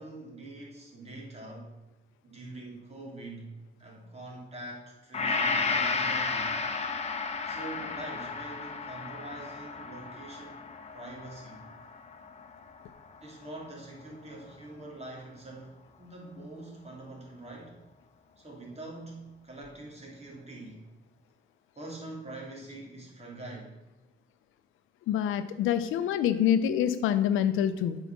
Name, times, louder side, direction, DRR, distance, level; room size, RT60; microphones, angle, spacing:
voice 1, 0.0-1.7 2.2-3.5 3.8-6.5 7.4-10.6 10.9-11.7 13.2-17.8 18.4-20.8 21.7-23.8, right 2 dB, 30° right, -2 dB, 3.0 m, -44 dB
Gong, 5.1-13.5 13.9-14.0, left 4 dB, 35° left, 1.0 m, -33 dB
voice 2, 25.1-28.0, left 10 dB, 90° left, 11 dB, 0.6 m, -26 dB
8.0 x 4.9 x 6.1 m, 1.0 s
cardioid pair, 90°, 20 cm